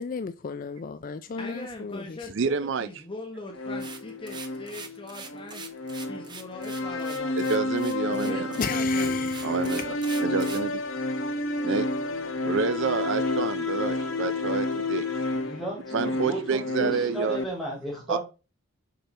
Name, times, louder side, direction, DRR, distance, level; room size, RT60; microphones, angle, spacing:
voice 1, 0.0-2.3 8.6-9.8, left 5 dB, 40° left, 0.3 m, -34 dB
voice 2, 1.4-5.6 6.0-7.4 8.1-9.3, left 2 dB, 25° left, 0.9 m, -40 dB
voice 3, 2.3-2.9 7.4-8.5 9.4-10.8 11.6-11.9 12.4-15.1 15.9-17.4 18.1-18.2, right 5 dB, 55° right, 0.4 m, -28 dB
sound 1, 3.5-17.4, left 2 dB, 60° left, 1.0 m, -30 dB
sound 2, 3.8-10.7, right 5 dB, 20° right, 0.9 m, -42 dB
voice 4, 15.3-18.2, right 1 dB, ahead, 3.8 m, -34 dB
6.8 x 5.8 x 4.1 m
head